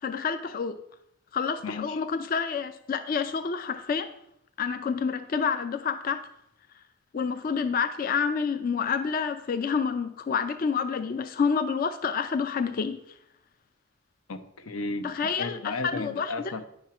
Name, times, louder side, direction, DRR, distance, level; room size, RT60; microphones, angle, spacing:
voice 1, 0.0-0.8 1.3-4.2 4.6-6.3 7.1-13.2 15.0-16.3, left 6 dB, 45° left, 0.4 m, -28 dB
voice 2, 1.6-2.0 14.3-15.1 15.4-16.6, left 3 dB, 85° left, 0.7 m, -34 dB
9.6 x 4.5 x 5.8 m
head